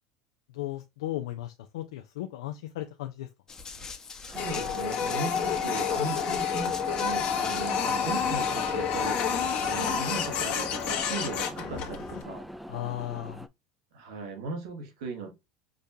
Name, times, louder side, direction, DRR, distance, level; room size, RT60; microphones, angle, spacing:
voice 1, 0.5-3.3 7.8-8.0 12.7-13.5, left 14 dB, 85° left, 0.4 m, -36 dB
Run, 3.5-8.8, left 4 dB, 25° left, 0.7 m, -43 dB
voice 2, 4.2-12.5 13.9-15.3, right 4 dB, 80° right, 1.2 m, -38 dB
sound 1, 4.3-13.5, equal, ahead, 0.3 m, -41 dB
Printer, 4.4-12.2, left 7 dB, 50° left, 0.9 m, -29 dB
5.1 x 2.3 x 2.7 m
supercardioid pair, 110°, 3 cm